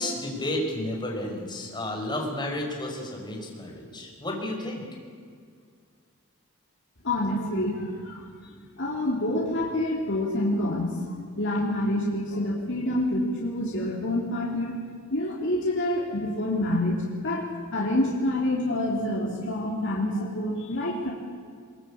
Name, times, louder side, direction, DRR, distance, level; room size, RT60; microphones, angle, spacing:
voice 1, 0.0-4.8, left 1 dB, 20° left, 0 dB, 5.3 m, -32 dB
voice 2, 7.0-8.2 8.8-14.7 15.1-21.1, left 1 dB, 60° left, -3 dB, 3.6 m, -27 dB
22.5 x 22.0 x 8.8 m, 2.1 s
head